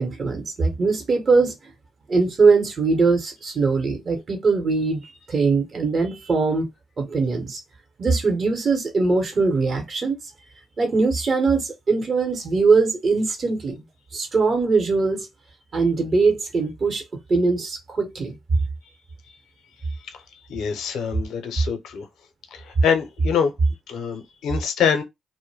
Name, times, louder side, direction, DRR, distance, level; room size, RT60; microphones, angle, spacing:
voice 1, 0.0-1.5 2.1-6.7 7.0-7.6 8.0-10.1 10.8-13.8 14.1-15.3 15.7-17.0 17.3-18.4, right 4 dB, 50° right, 0.9 m, -21 dB
voice 2, 20.5-22.1 22.5-23.5 23.9-25.0, left 7 dB, 75° left, 0.6 m, -25 dB
2.2 x 2.1 x 3.2 m
supercardioid pair, 55°, 0 cm